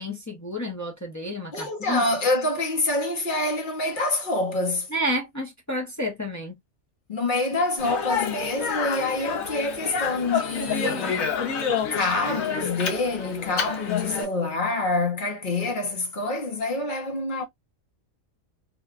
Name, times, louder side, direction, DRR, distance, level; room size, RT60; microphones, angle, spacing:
voice 1, 0.0-2.0 4.9-6.5, equal, 25° left, 0.4 m, -30 dB
voice 2, 1.5-4.9 7.1-11.4 11.9-17.4, left 2 dB, 45° left, 0.8 m, -26 dB
Speech, 7.8-14.3, left 6 dB, 90° left, 1.3 m, -28 dB
3.1 x 2.2 x 2.3 m
omnidirectional pair, 1.4 m